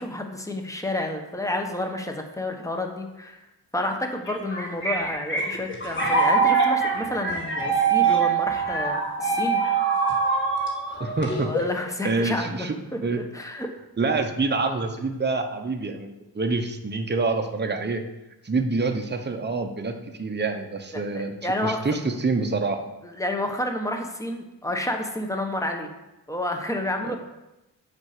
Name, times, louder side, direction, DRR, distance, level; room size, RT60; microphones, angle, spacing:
voice 1, 0.0-3.4 3.7-9.6 11.4-12.7 12.9-13.0 13.3-13.7 20.9-21.0 21.4-21.8 23.0-25.9 26.3-27.2, left 1 dB, 5° left, 3 dB, 1.0 m, -30 dB
sound 1, 4.3-11.8, right 5 dB, 25° left, 2.1 m, -23 dB
voice 2, 11.0-11.5 12.0-13.2 14.0-18.0 18.4-21.3 21.6-22.8 27.0-27.1, right 3 dB, 25° right, 4 dB, 0.9 m, -26 dB
7.2 x 5.2 x 6.6 m, 0.97 s
wide cardioid pair, 115°, 43 cm